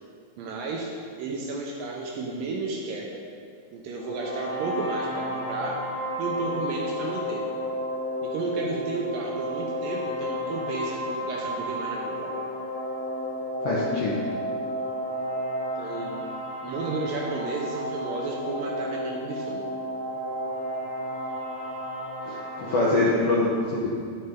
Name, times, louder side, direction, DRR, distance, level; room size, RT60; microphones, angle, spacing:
voice 1, 0.4-0.9 1.2-3.2 3.7-5.8 6.2-7.4 8.2-12.3 15.8-16.2 16.6-19.7, right 3 dB, 75° right, -2 dB, 2.3 m, -32 dB
sound 1, 4.0-22.8, equal, 55° left, 2.4 m, -32 dB
voice 2, 13.6-14.2 22.3-23.9, left 2 dB, 75° left, -6 dB, 1.4 m, -24 dB
10.5 x 6.6 x 3.6 m, 2.2 s
omnidirectional pair, 4.2 m